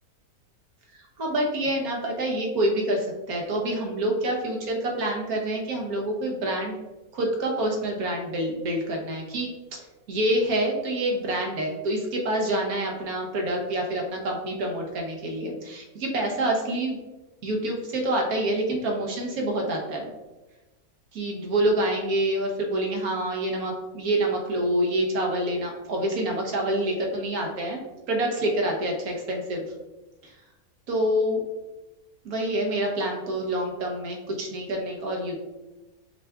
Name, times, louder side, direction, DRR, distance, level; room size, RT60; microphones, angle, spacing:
voice 1, 1.2-6.8 7.1-17.0 17.4-20.1 21.1-27.8 28.1-29.6 30.2-30.3 30.9-31.4 32.2-35.4, right 1 dB, 80° right, 0 dB, 1.4 m, -27 dB
6.5 x 2.3 x 3.5 m, 1.1 s
omnidirectional pair, 1.6 m